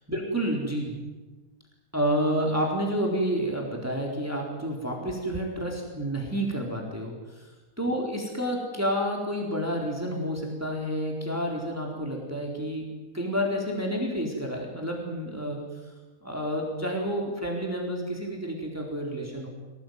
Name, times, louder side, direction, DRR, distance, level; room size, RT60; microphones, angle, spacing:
voice 1, 0.1-1.0 1.9-7.5 7.8-12.9 13.1-15.6 16.2-19.5, equal, 10° right, 0 dB, 4.1 m, -29 dB
26.0 x 18.0 x 9.5 m, 1.2 s
omnidirectional pair, 1.7 m